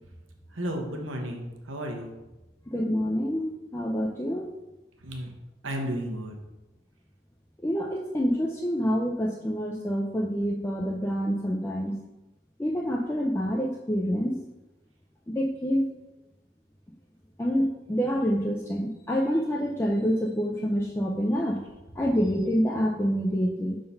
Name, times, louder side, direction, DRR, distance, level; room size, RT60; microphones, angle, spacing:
voice 1, 0.5-2.1 5.0-5.3 5.6-6.4, equal, 85° right, 2 dB, 1.0 m, -33 dB
voice 2, 2.7-4.5 7.6-12.0 12.6-14.4 15.3-15.8 17.4-21.6 22.0-23.8, equal, 15° left, -1 dB, 0.4 m, -27 dB
5.6 x 3.8 x 5.4 m, 1.0 s
head